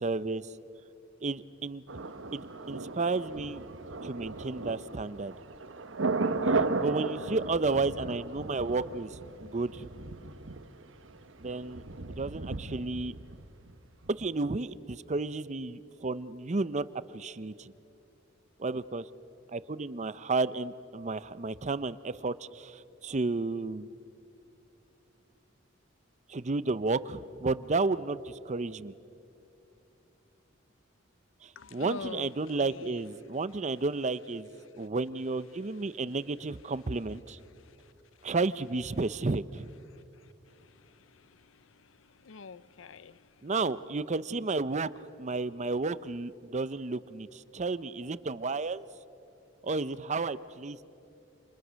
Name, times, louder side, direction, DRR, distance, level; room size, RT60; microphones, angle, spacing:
voice 1, 0.0-0.4 1.2-1.8 2.3-3.6 4.0-5.3 6.5-9.9 11.4-13.1 14.1-17.7 18.6-19.0 19.5-23.9 26.3-28.9 31.4-34.5 34.7-37.4 38.2-39.7 43.4-44.9 45.2-48.9 49.6-50.8, right 3 dB, 35° right, 0.6 m, -32 dB
Thunder, 1.9-13.8 14.0-14.1, right 3 dB, 70° right, 1.2 m, -35 dB
voice 2, 31.6-33.1 34.7-34.9 35.5-36.0 37.6-37.9 38.2-38.3 39.9-43.5, left 4 dB, 70° left, 0.6 m, -47 dB
29.0 x 27.5 x 6.3 m
head